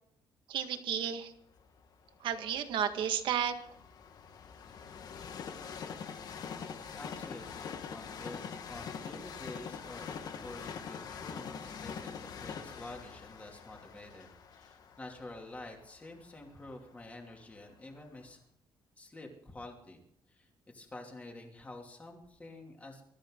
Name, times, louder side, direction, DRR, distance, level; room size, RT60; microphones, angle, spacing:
voice 1, 0.5-1.3 2.2-3.5, right 9 dB, 75° right, 7 dB, 1.8 m, -32 dB
Train, 1.6-17.5 18.1-18.2, left 6 dB, 50° left, 1.4 m, -44 dB
voice 2, 7.0-8.4 8.7-14.3 14.5-18.4 19.0-20.0 20.3-23.0, left 2 dB, 15° left, 1 dB, 2.8 m, -48 dB
23.0 x 13.5 x 3.9 m, 0.71 s
cardioid pair, 175°, 9 cm